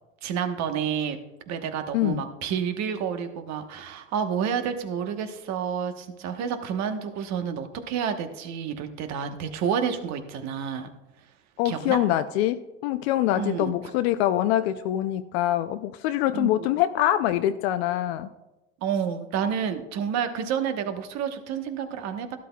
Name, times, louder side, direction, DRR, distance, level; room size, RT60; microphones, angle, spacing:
voice 1, 0.2-1.2 1.5-10.9 11.6-12.0 13.3-13.8 16.3-16.8 18.8-22.4, right 7 dB, 60° right, 7 dB, 1.2 m, -29 dB
voice 2, 11.6-18.3, left 13 dB, 75° left, 10 dB, 0.5 m, -24 dB
12.0 x 12.0 x 2.3 m, 1.0 s
hypercardioid pair, 85°, 32 cm